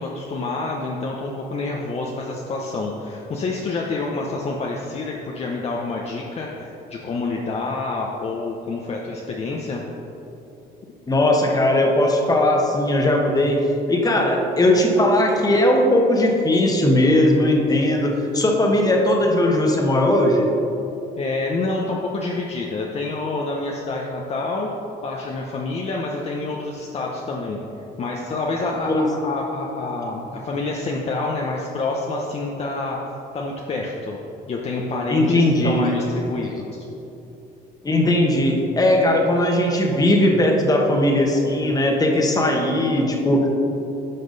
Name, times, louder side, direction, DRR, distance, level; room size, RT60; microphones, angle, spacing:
voice 1, 0.0-9.8 21.2-24.7 25.0-27.6 28.0-33.0 33.3-34.2 34.5-36.6, left 3 dB, 40° left, -2 dB, 0.8 m, -27 dB
voice 2, 11.1-20.5 28.8-29.1 35.1-35.9 37.8-43.6, left 1 dB, 20° left, 1 dB, 1.3 m, -18 dB
11.0 x 5.9 x 4.0 m, 3.0 s
cardioid pair, 110°, 17 cm